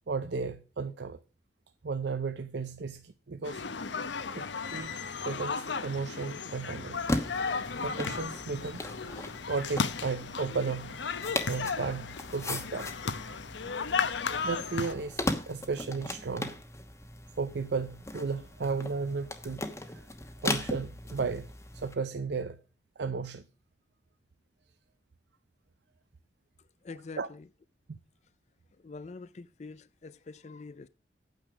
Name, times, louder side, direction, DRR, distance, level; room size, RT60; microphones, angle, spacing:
voice 1, 0.1-1.2 1.8-3.6 4.3-4.9 5.2-7.0 7.8-8.9 9.5-11.0 11.5-12.9 14.3-16.5 17.4-20.1 20.4-22.6 23.0-23.5 27.2-27.3 27.9-28.0, right 4 dB, 70° right, 0.6 m, -34 dB
sound 1, 3.4-14.9, left 5 dB, 80° left, 0.8 m, -35 dB
sound 2, 6.9-21.9, left 1 dB, 15° left, 1.0 m, -38 dB
voice 2, 26.8-27.5 28.8-30.9, left 3 dB, 40° left, 0.4 m, -45 dB
9.1 x 6.5 x 6.1 m
head